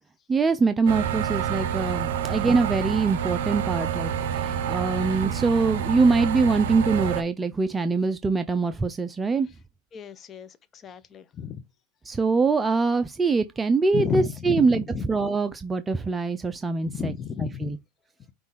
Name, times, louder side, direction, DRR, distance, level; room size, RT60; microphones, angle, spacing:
voice 1, 0.3-9.5 12.1-14.8 15.1-17.1 17.6-17.7, right 4 dB, 20° right, 0.4 m, -23 dB
sound 1, 0.9-7.2, right 8 dB, 75° right, 0.7 m, -28 dB
voice 2, 9.9-11.6 13.9-15.1 16.8-17.8, left 8 dB, 35° left, 0.6 m, -32 dB
5.5 x 2.3 x 4.0 m
hypercardioid pair, 105°, 0 cm